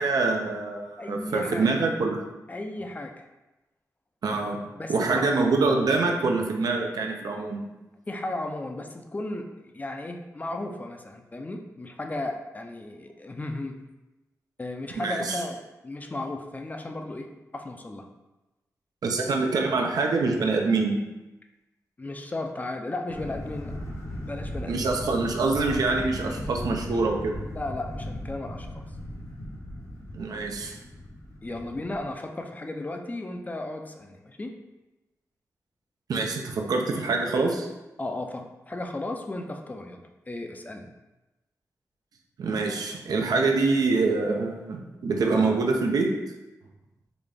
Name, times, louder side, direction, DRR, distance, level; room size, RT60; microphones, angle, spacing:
voice 1, 0.0-2.2 4.2-4.6 4.9-7.6 14.9-15.4 19.0-21.0 24.7-27.4 30.1-30.7 36.1-37.7 42.4-46.1, right 3 dB, 85° right, 2 dB, 0.5 m, -25 dB
voice 2, 1.0-1.7 2.5-3.2 4.7-5.1 8.1-13.8 14.6-17.3 17.5-18.0 22.0-23.7 24.2-24.9 27.5-28.8 31.4-34.5 38.0-40.9, left 2 dB, 25° left, 4 dB, 0.4 m, -35 dB
sound 1, 23.1-32.1, left 1 dB, 55° left, 0.8 m, -37 dB
3.9 x 2.3 x 3.3 m, 1.0 s
cardioid pair, 75°, 6 cm